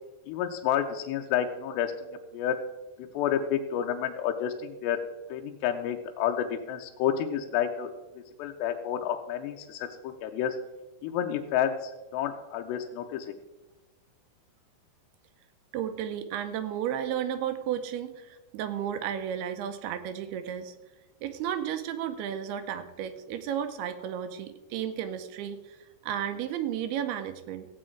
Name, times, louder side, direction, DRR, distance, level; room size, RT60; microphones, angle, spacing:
voice 1, 0.3-1.9 2.3-2.6 3.1-5.0 5.3-7.9 8.2-10.6 11.0-13.3, left 9 dB, 85° left, 4 dB, 2.8 m, -30 dB
voice 2, 15.7-20.7 21.2-25.8 26.0-27.7, right 9 dB, 80° right, 10 dB, 2.5 m, -33 dB
15.0 x 8.8 x 4.5 m, 1.1 s
omnidirectional pair, 4.8 m